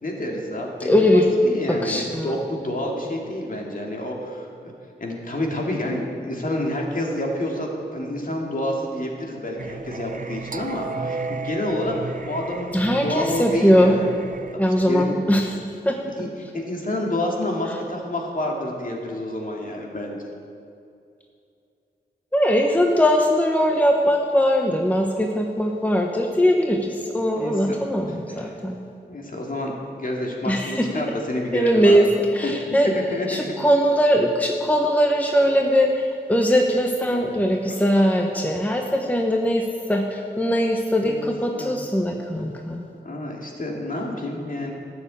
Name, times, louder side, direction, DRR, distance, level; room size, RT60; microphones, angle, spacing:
voice 1, 0.0-4.7 5.0-12.8 13.0-14.1 14.5-15.1 16.2-16.3 16.5-20.2 27.4-27.5 28.3-28.6 29.1-32.0 32.4-33.5 41.0-41.3 41.6-41.7 43.0-44.7, left 1 dB, 45° left, -1 dB, 2.4 m, -28 dB
voice 2, 0.8-1.3 1.7-2.3 12.7-14.0 14.6-15.6 15.8-16.0 22.3-28.8 30.4-31.0 31.5-32.9 33.3-42.9, equal, 10° left, 2 dB, 1.0 m, -20 dB
Singing, 9.6-14.5, right 4 dB, 45° right, 0.7 m, -33 dB
12.0 x 7.1 x 8.5 m, 2.5 s
wide cardioid pair, 70°, 19 cm